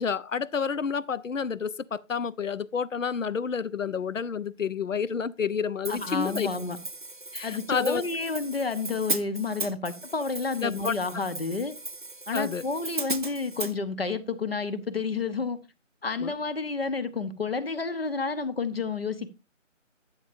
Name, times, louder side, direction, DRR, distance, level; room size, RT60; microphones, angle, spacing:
voice 1, 0.0-6.5 7.3-8.0 10.6-10.9 12.3-12.6 16.2-16.3, left 6 dB, 75° left, 0.7 m, -29 dB
Hi-hat, 5.8-13.7, right 2 dB, 40° right, 0.6 m, -37 dB
voice 2, 5.9-6.8 7.4-11.7 12.3-15.6 16.0-19.3, left 4 dB, 50° left, 1.0 m, -30 dB
11.0 x 8.2 x 2.6 m
figure-of-eight pair, 170°, 38 cm